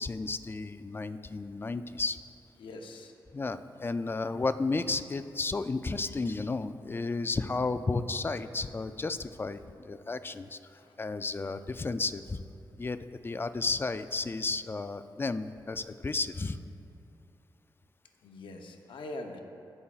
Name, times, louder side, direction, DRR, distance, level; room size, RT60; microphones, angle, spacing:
voice 1, 0.0-2.2 3.3-10.6 11.0-12.4 12.8-16.6, left 3 dB, 25° left, 11 dB, 0.3 m, -33 dB
voice 2, 2.6-3.1 10.8-10.9 18.2-19.4, left 2 dB, 80° left, 4 dB, 0.8 m, -43 dB
15.5 x 5.5 x 2.4 m, 2.6 s
cardioid pair, 70°, 9 cm